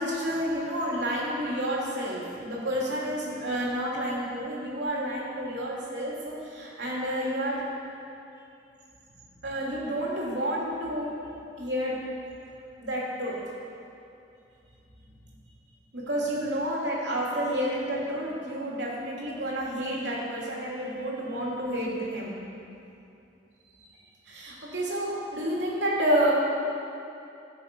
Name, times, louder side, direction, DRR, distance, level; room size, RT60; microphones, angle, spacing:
voice 1, 0.0-7.6 9.4-11.1 11.6-12.0 12.8-13.3 15.9-22.3 24.3-26.3, equal, 80° right, -4 dB, 3.0 m, -30 dB
17.0 x 6.7 x 5.4 m, 2.6 s
head